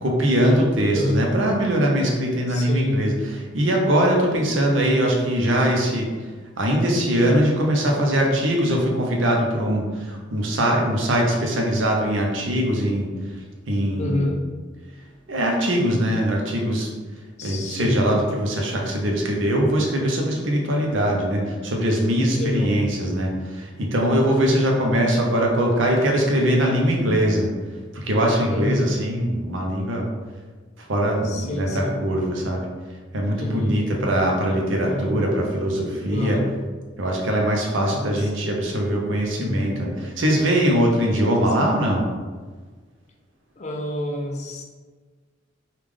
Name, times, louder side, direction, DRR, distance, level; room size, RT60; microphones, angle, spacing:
voice 1, 0.0-3.1 3.5-6.1 6.6-13.1 13.7-14.3 15.3-16.9 17.4-27.5 27.9-30.1 30.8-32.7 33.1-36.4 37.0-42.1, equal, 80° right, 0 dB, 0.7 m, -21 dB
voice 2, 0.9-1.3 2.5-3.1 14.0-14.4 17.4-18.0 22.4-22.8 24.4-24.8 28.5-28.9 31.2-32.0 33.3-34.2 34.8-35.2 36.1-36.5 37.9-38.3 39.4-39.7 41.1-41.5 43.6-44.6, left 2 dB, 40° left, 1 dB, 0.5 m, -28 dB
3.6 x 2.4 x 3.2 m, 1.4 s
head